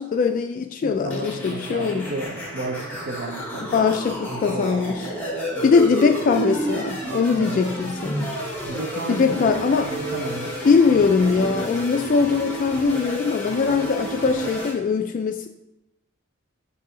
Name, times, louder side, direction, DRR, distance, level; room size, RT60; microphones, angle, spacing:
voice 1, 0.0-2.1 3.5-5.1 5.6-8.3 9.1-9.9 10.6-15.5, left 5 dB, 40° left, 6 dB, 0.3 m, -21 dB
voice 2, 0.8-3.9 4.3-4.7 7.5-7.6 8.7-10.6 11.2-11.7, right 2 dB, 55° right, 0 dB, 0.7 m, -33 dB
sound 1, 1.1-14.7, right 1 dB, 10° left, 1.4 m, -31 dB
7.9 x 2.7 x 4.9 m, 0.90 s
head